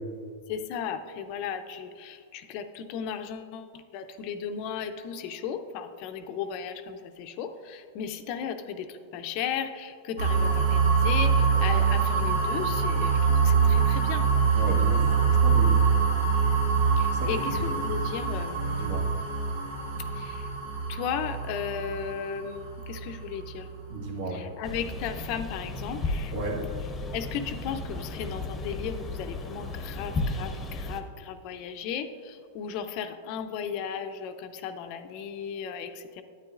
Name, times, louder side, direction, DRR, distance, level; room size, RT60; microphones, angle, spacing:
voice 1, 0.5-14.3 17.0-19.0 20.1-20.5 20.9-23.7 24.3-26.3 27.1-36.2, left 7 dB, 50° left, 9 dB, 0.6 m, -35 dB
sound 1, 10.2-24.0, right 5 dB, 80° right, 1.8 m, -24 dB
voice 2, 14.5-15.8 17.2-17.3 18.8-19.0 23.9-24.4 26.3-26.6, right 2 dB, 60° right, 0 dB, 1.8 m, -33 dB
sound 2, 24.6-31.0, left 2 dB, 15° left, 0.9 m, -34 dB
9.8 x 8.9 x 2.5 m, 2.2 s
hypercardioid pair, 125°, 0 cm